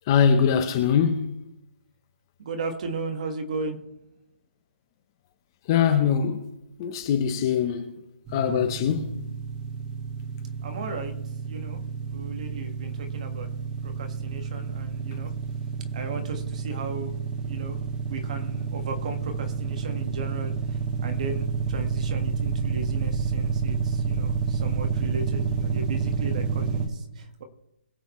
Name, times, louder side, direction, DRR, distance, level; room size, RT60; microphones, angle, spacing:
voice 1, 0.1-1.3 5.7-6.4 6.8-7.9 8.3-9.1, left 7 dB, 20° left, 0.7 m, -22 dB
voice 2, 2.4-3.8 10.6-11.1 11.4-11.8 12.1-13.5 13.8-15.3 15.9-17.8 18.1-27.4, right 4 dB, 35° right, 1.6 m, -36 dB
sound 1, 8.3-26.9, right 5 dB, 10° right, 1.0 m, -29 dB
22.0 x 7.7 x 3.1 m
hypercardioid pair, 175°, 6 cm